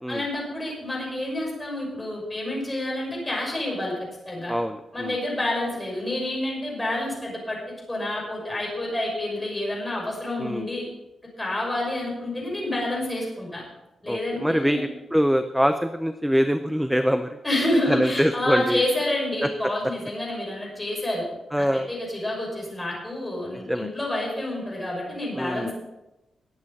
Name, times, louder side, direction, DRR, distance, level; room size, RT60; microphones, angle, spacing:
voice 1, 0.1-3.9 4.3-4.5 4.9-7.6 7.9-10.8 11.4-13.6 14.0-14.8 17.4-21.2 21.6-25.7, left 1 dB, 15° left, -2 dB, 6.0 m, -28 dB
voice 2, 4.5-5.2 10.4-10.7 14.1-17.4 17.9-18.8 19.4-19.5 21.5-21.9 23.5-23.9 25.3-25.7, equal, ahead, 9 dB, 0.6 m, -24 dB
20.5 x 8.5 x 4.2 m, 0.97 s
wide cardioid pair, 125°, 0 cm